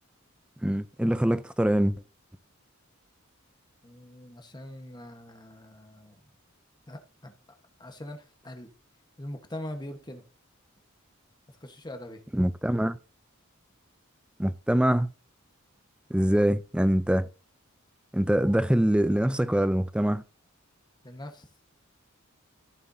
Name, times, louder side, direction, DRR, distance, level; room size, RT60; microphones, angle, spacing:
voice 1, 0.6-2.0 12.3-13.0 14.4-15.1 16.1-17.3 18.1-20.2, right 1 dB, 5° right, 0.4 m, -24 dB
voice 2, 3.8-6.2 6.9-7.3 7.8-8.7 9.2-10.2 11.6-12.2 21.0-21.5, left 1 dB, 20° left, 1.2 m, -42 dB
15.0 x 6.8 x 2.7 m
head